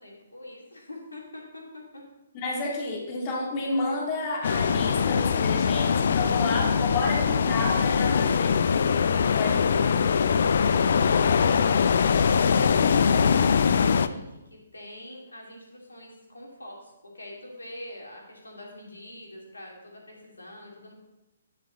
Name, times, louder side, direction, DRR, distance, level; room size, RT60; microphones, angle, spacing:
voice 1, 0.0-2.0 12.2-20.9, left 1 dB, 75° left, -2 dB, 2.6 m, -44 dB
voice 2, 2.3-8.6 9.4-9.5, left 3 dB, 30° left, -2 dB, 2.0 m, -30 dB
sound 1, 4.4-14.1, left 6 dB, 55° left, 0.4 m, -22 dB
10.0 x 6.6 x 3.9 m, 0.98 s
figure-of-eight pair, 125°, 0 cm